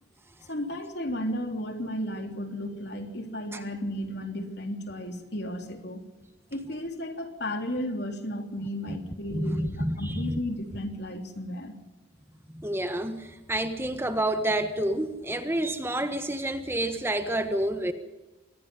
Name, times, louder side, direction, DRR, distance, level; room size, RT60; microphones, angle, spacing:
voice 1, 0.5-6.0 6.5-9.7 10.0-11.7, left 1 dB, 60° left, 4 dB, 3.4 m, -34 dB
voice 2, 9.3-10.4 12.5-17.9, right 1 dB, 15° right, 8 dB, 1.4 m, -29 dB
25.5 x 20.0 x 5.5 m, 1.1 s
head